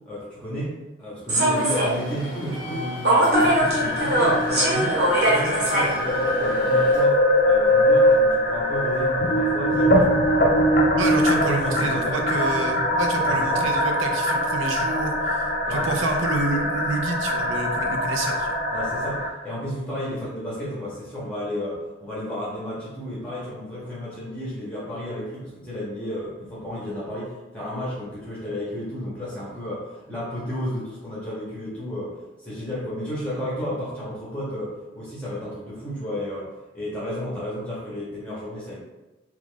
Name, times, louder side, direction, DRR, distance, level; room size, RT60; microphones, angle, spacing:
voice 1, 0.1-5.0 5.3-10.2 11.4-12.1 13.2-13.7 15.6-15.9 18.7-38.8, equal, 5° left, -8 dB, 0.7 m, -32 dB
Human voice / Subway metro underground, 1.3-7.0, right 1 dB, 55° right, 1.0 m, -23 dB
sound 1, 3.3-19.3, equal, 45° left, 0.4 m, -22 dB
voice 2, 11.0-18.5, right 3 dB, 85° right, 3 dB, 0.5 m, -28 dB
3.0 x 2.4 x 3.6 m, 1.1 s
head